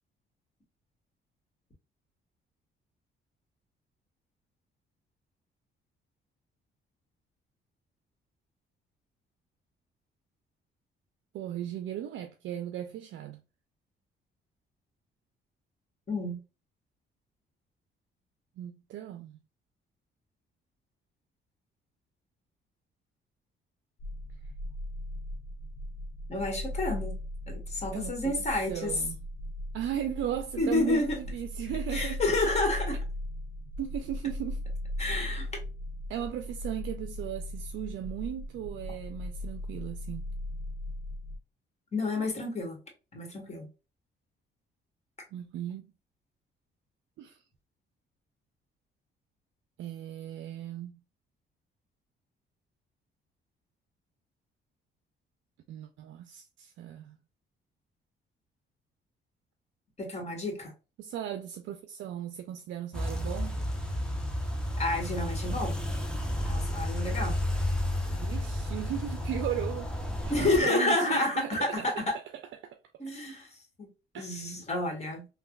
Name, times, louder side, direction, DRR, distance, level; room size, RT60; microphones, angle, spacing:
voice 1, 11.3-13.4 18.6-19.4 27.9-28.3 28.7-29.2 29.7-32.2 33.8-34.6 36.1-40.3 45.3-45.9 47.2-47.4 49.8-50.9 55.7-57.2 61.0-63.6 68.1-70.1 70.4-72.8 74.1-74.5, right 10 dB, 70° right, 0.4 m, -37 dB
voice 2, 16.1-16.4 26.3-27.1 27.5-28.9 30.6-31.2 31.9-33.0 35.0-35.5 41.9-42.8 43.1-43.7 60.0-60.7 64.8-65.8 66.4-67.4 70.3-72.2 73.0-73.5 73.8-73.9 74.1-75.3, left 2 dB, 35° left, 1.4 m, -30 dB
sound 1, 24.0-41.4, left 1 dB, 80° left, 0.6 m, -38 dB
sound 2, 62.9-70.6, left 1 dB, 5° left, 0.7 m, -32 dB
3.3 x 2.2 x 2.3 m
cardioid pair, 90°, 20 cm